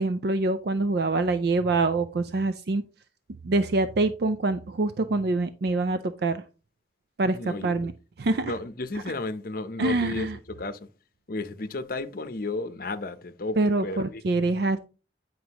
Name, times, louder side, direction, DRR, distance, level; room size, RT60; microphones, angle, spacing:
voice 1, 0.0-2.8 3.4-6.4 7.2-7.9 8.2-8.5 9.8-10.4 13.6-14.8, right 2 dB, 60° right, 0.4 m, -25 dB
voice 2, 7.2-7.7 8.4-10.8 11.3-14.5, left 2 dB, 50° left, 0.7 m, -33 dB
9.5 x 5.1 x 2.9 m
head